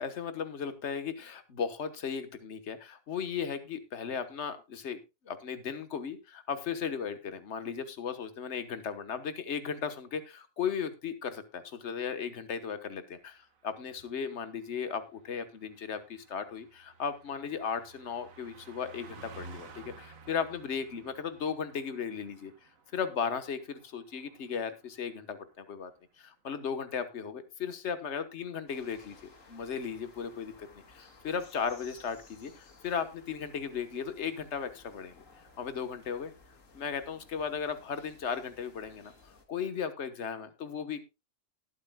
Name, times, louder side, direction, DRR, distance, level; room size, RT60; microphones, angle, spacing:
voice 1, 0.0-5.0 5.2-22.5 22.9-25.9 26.2-35.2 35.6-36.3 36.7-41.1, left 6 dB, 60° left, 10 dB, 1.5 m, -36 dB
Car passing by, 13.3-25.2 25.5-25.7, right 4 dB, 80° right, 1.7 m, -54 dB
sound 1, 28.7-39.5, left 3 dB, 75° left, 2.2 m, -57 dB
19.5 x 8.3 x 2.3 m, 0.25 s
omnidirectional pair, 1.4 m